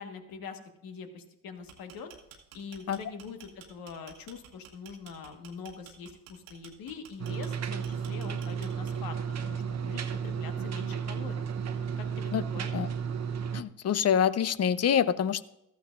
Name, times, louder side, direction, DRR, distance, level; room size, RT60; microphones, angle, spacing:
voice 1, 0.0-2.1 2.5-11.5 11.8-12.7, left 5 dB, 65° left, 6 dB, 1.6 m, -44 dB
sound 1, 1.6-9.2, right 8 dB, 85° right, 1.5 m, -52 dB
sound 2, 7.2-13.6, right 7 dB, 45° right, 1.0 m, -33 dB
voice 2, 13.5-15.4, left 8 dB, 40° left, 16 dB, 0.7 m, -26 dB
14.5 x 13.0 x 2.5 m, 0.87 s
hypercardioid pair, 55°, 38 cm